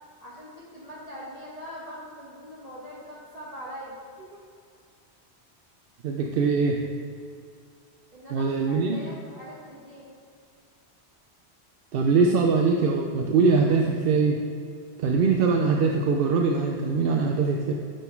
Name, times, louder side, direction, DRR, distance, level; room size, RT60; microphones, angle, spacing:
voice 1, 0.2-4.0 8.1-10.1, equal, 35° right, -8 dB, 1.3 m, -42 dB
voice 2, 6.0-6.8 8.3-9.0 11.9-14.4 15.0-17.7, right 4 dB, 65° right, 1 dB, 0.7 m, -22 dB
9.7 x 3.9 x 4.5 m, 2.4 s
omnidirectional pair, 1.1 m